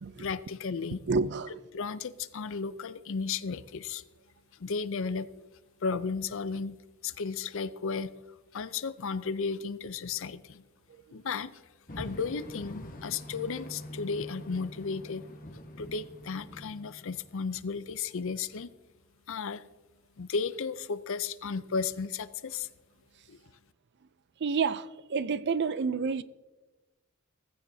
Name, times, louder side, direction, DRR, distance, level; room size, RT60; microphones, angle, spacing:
voice 1, 0.2-1.0 1.7-4.0 4.5-5.5 5.8-6.8 7.0-10.6 11.1-15.2 15.8-18.7 19.3-19.6 20.2-22.7 23.3-23.4, left 5 dB, 65° left, 0.6 m, -34 dB
voice 2, 1.1-1.5 24.4-26.2, right 5 dB, 55° right, 0.5 m, -29 dB
sound 1, 11.9-17.6, equal, 40° left, 1.3 m, -45 dB
16.5 x 15.0 x 2.8 m
head